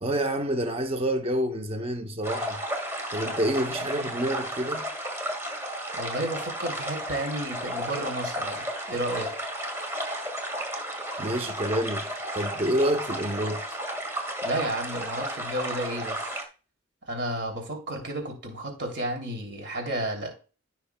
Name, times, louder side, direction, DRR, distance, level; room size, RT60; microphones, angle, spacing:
voice 1, 0.0-2.6 3.1-4.9 11.2-13.6, right 1 dB, 25° right, 0.8 m, -28 dB
sound 1, 2.2-16.4, right 1 dB, 10° right, 1.8 m, -33 dB
voice 2, 5.9-9.3 14.4-16.3 17.1-20.3, right 1 dB, 55° right, 2.9 m, -32 dB
15.5 x 6.1 x 2.3 m
head